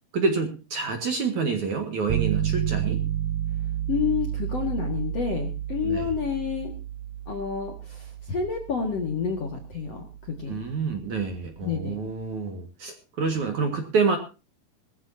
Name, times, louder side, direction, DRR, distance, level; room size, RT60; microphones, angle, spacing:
voice 1, 0.1-3.0 5.8-6.1 10.5-14.2, right 4 dB, 50° right, 5 dB, 2.6 m, -27 dB
sound 1, 2.1-12.0, right 11 dB, 80° right, 2.2 m, -31 dB
voice 2, 3.9-6.7 7.3-10.6 11.6-12.0, left 6 dB, 50° left, 3 dB, 2.2 m, -29 dB
21.0 x 14.0 x 2.8 m, 0.31 s
omnidirectional pair, 5.2 m